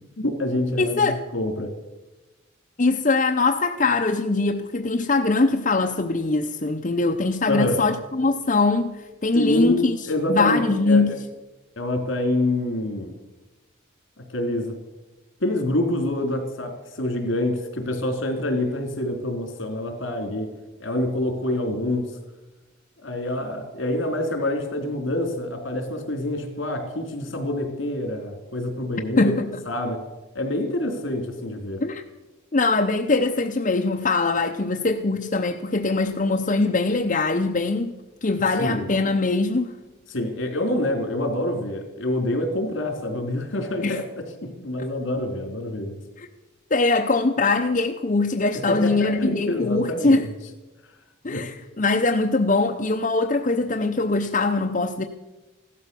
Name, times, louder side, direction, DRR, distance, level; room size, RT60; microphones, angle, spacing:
voice 1, 0.2-1.7 7.5-7.8 9.3-11.1 11.8-13.1 14.2-14.8 15.4-20.5 20.8-22.1 23.0-29.3 29.6-30.0 30.3-31.8 38.6-38.9 40.1-46.0 48.5-50.3 51.3-51.4, left 1 dB, 70° left, 3.2 m, -26 dB
voice 2, 0.8-1.2 2.8-11.1 29.2-29.5 31.8-32.0 32.5-37.9 38.2-39.8 43.8-44.0 44.8-44.9 46.2-46.3 46.7-50.3 51.2-55.1, left 3 dB, 40° left, 0.6 m, -22 dB
15.5 x 12.5 x 6.8 m
head